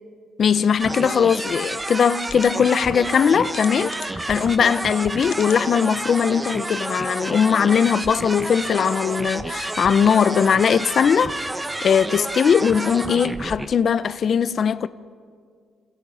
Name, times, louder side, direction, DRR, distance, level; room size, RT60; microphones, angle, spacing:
voice 1, 0.4-11.3 11.8-14.9, left 7 dB, 55° left, 0.9 m, -20 dB
sound 1, 0.8-13.7, right 2 dB, 15° right, 1.4 m, -30 dB
sound 2, 2.2-2.5 3.5-4.3 5.2-5.6 6.2-6.3 6.6-6.7, left 8 dB, 70° left, 1.6 m, -40 dB
28.5 x 28.0 x 5.7 m
cardioid pair, 90°, 0 cm